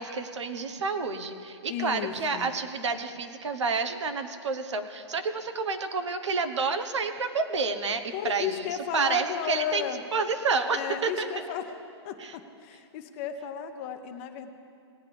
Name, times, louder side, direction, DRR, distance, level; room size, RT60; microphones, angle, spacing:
voice 1, 0.0-11.3 12.2-12.3, right 4 dB, 90° right, 8 dB, 1.1 m, -29 dB
voice 2, 1.7-2.5 8.1-10.0 10.7-11.7 12.0-14.5, left 9 dB, 25° left, 7 dB, 0.6 m, -34 dB
19.0 x 9.3 x 3.4 m, 2.5 s
hypercardioid pair, 165°, 15 cm